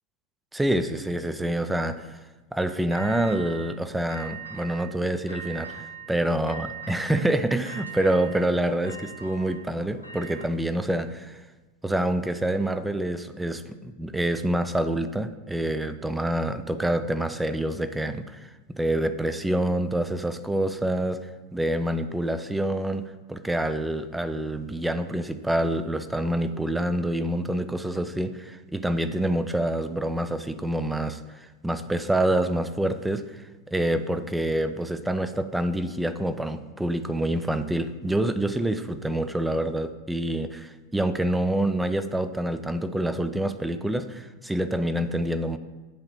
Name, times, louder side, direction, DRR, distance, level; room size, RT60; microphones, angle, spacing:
voice 1, 0.5-2.2 2.5-11.4 11.8-45.6, right 1 dB, 5° right, 11 dB, 0.3 m, -27 dB
sound 1, 2.9-3.8 4.1-5.0 5.3-6.1 6.5-10.5, right 6 dB, 90° left, 0.6 m, -41 dB
8.3 x 2.9 x 5.5 m, 1.2 s
figure-of-eight pair, 90°, 0 cm